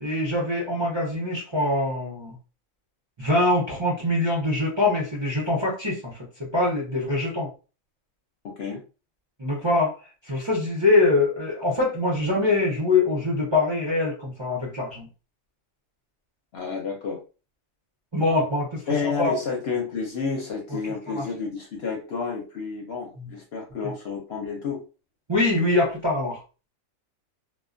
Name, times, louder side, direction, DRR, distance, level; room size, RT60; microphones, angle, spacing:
voice 1, 0.0-2.4 3.2-6.1 6.4-7.5 9.4-10.0 10.2-15.1 18.1-19.3 21.1-21.2 23.2-23.3 25.3-26.4, left 2 dB, 30° right, -5 dB, 0.5 m, -24 dB
voice 2, 8.4-8.8 16.5-17.2 18.9-24.8, left 5 dB, 60° left, 0 dB, 0.7 m, -30 dB
2.2 x 2.2 x 2.5 m, 0.34 s
omnidirectional pair, 1.4 m